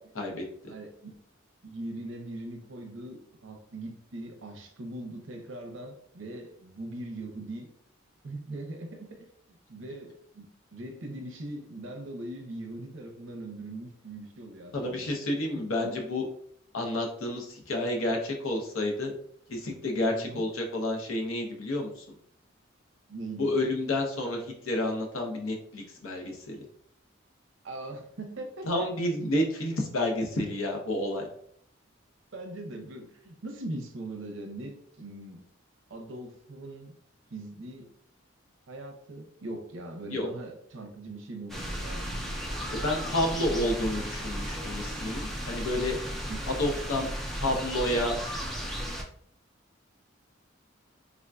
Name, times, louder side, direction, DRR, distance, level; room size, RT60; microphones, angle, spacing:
voice 1, 0.1-0.7 14.7-16.3 16.7-19.1 19.5-22.0 23.4-26.6 28.6-31.3 40.1-40.3 42.7-46.0 46.5-47.1 47.3-48.1, left 1 dB, 90° left, 2 dB, 0.7 m, -30 dB
voice 2, 0.7-1.2 1.6-7.7 8.2-15.1 15.8-16.0 20.1-20.4 23.1-23.5 27.6-28.9 32.3-35.4 35.9-36.9 37.3-37.9 38.7-42.4 46.3-46.4, right 2 dB, 70° right, 4 dB, 0.6 m, -41 dB
sound 1, 41.5-49.0, equal, ahead, 0.3 m, -35 dB
3.6 x 2.5 x 2.2 m, 0.65 s
head